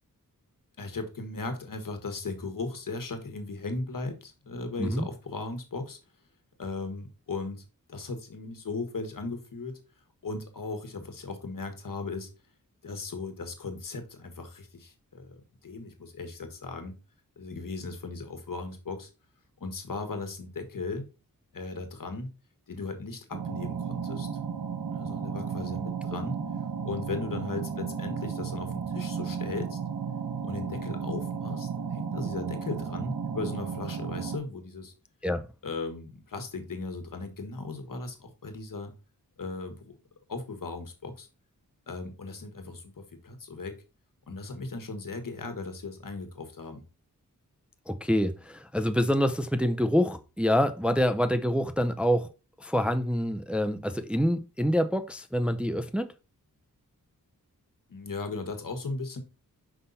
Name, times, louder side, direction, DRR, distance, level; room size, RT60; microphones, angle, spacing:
voice 1, 0.8-6.0 6.6-9.8 10.2-12.3 12.8-16.9 17.4-19.1 19.6-21.0 21.5-22.3 22.7-24.3 24.9-26.4 26.8-29.8 30.4-34.9 35.6-38.9 39.4-39.9 40.3-41.3 41.9-43.7 44.3-46.8 57.9-59.2, left 3 dB, 70° left, 1.6 m, -37 dB
sound 1, 23.3-34.4, right 6 dB, 75° right, 1.0 m, -34 dB
voice 2, 47.9-52.3 52.6-56.1, equal, 5° right, 0.5 m, -26 dB
5.6 x 5.5 x 4.1 m
wide cardioid pair, 100°, 34 cm